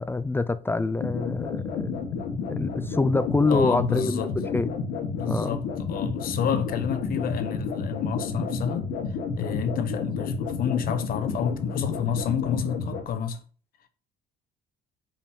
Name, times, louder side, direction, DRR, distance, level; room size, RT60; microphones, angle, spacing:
voice 1, 0.0-2.1 2.5-4.3 4.5-4.7 5.3-5.5, left 3 dB, 15° left, 0.4 m, -26 dB
sound 1, 1.0-13.0, left 4 dB, 75° left, 1.7 m, -31 dB
voice 2, 3.5-4.3 5.1-13.4, left 8 dB, 60° left, 1.1 m, -29 dB
5.4 x 5.1 x 5.7 m
cardioid pair, 110°, 17 cm